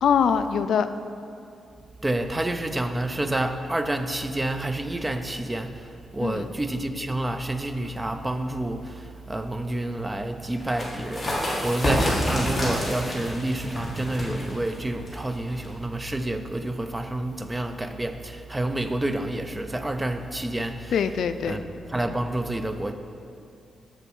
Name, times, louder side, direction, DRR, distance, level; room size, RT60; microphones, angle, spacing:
voice 1, 0.0-0.9 6.2-6.5 20.9-21.6, left 7 dB, 75° left, 10 dB, 0.3 m, -23 dB
voice 2, 2.0-20.9 21.4-22.9, right 1 dB, 15° right, 8 dB, 0.4 m, -29 dB
sound 1, 10.6-15.9, equal, 10° left, 1.8 m, -29 dB
7.0 x 6.8 x 4.5 m, 2.5 s
wide cardioid pair, 160°, 0 cm